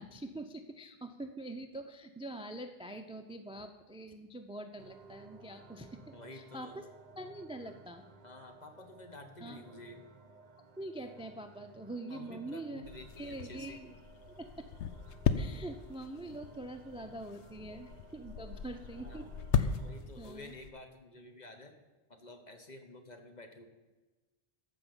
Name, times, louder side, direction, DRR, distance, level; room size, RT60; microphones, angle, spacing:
voice 1, 0.0-6.0 6.3-6.9 7.2-8.0 9.4-9.6 10.8-12.8 13.2-13.9 14.4-14.7 15.4-19.3 19.5-19.7 20.2-20.5, right 1 dB, 5° right, 8 dB, 0.4 m, -44 dB
sound 1, 4.8-20.0, right 4 dB, 40° right, 0.8 m, -57 dB
voice 2, 6.1-6.7 8.2-10.0 12.1-13.8 18.9-19.3 19.8-21.7 22.2-23.7, left 2 dB, 40° left, 5 dB, 1.3 m, -51 dB
sound 2, 12.8-20.7, left 7 dB, 90° left, 1.0 m, -37 dB
14.0 x 5.5 x 7.1 m, 1.2 s
omnidirectional pair, 1.1 m